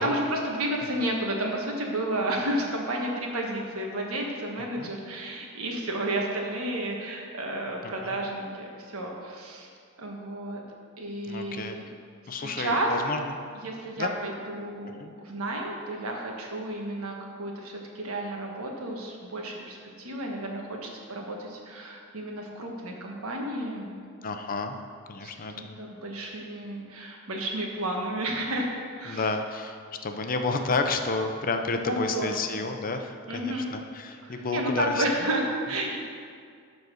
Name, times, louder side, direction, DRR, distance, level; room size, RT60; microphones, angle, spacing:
voice 1, 0.0-9.7 10.0-10.6 11.0-11.8 12.2-12.9 13.6-23.9 25.2-25.3 25.6-28.7 29.0-29.3 31.9-32.6 33.3-33.7 34.2-36.0, right 1 dB, 70° right, 0 dB, 1.4 m, -32 dB
voice 2, 11.3-11.8 12.3-13.2 14.0-14.1 15.0-15.1 24.2-24.8 25.1-25.8 29.1-29.8 30.0-35.0, left 3 dB, 40° left, 6 dB, 0.6 m, -30 dB
12.0 x 4.1 x 6.3 m, 2.2 s
head